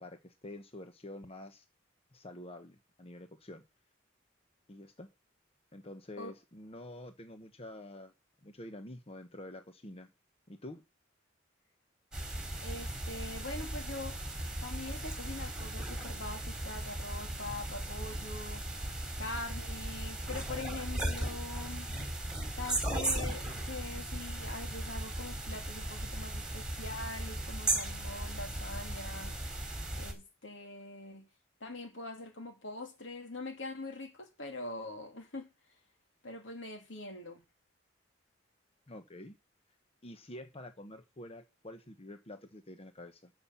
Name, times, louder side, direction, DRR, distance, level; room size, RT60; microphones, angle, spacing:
voice 1, 0.0-1.6 2.1-3.6 4.7-5.1 5.7-8.1 8.4-10.1 10.5-10.8 38.9-39.4 40.0-43.3, left 1 dB, 30° left, 1.0 m, -48 dB
sound 1, 12.1-30.1, right 1 dB, 5° right, 3.7 m, -37 dB
voice 2, 12.6-14.2 14.6-18.7 19.2-21.9 22.5-29.4 29.9-31.3 31.6-35.5 36.2-37.4, left 2 dB, 70° left, 2.6 m, -43 dB
13.0 x 5.8 x 7.0 m
head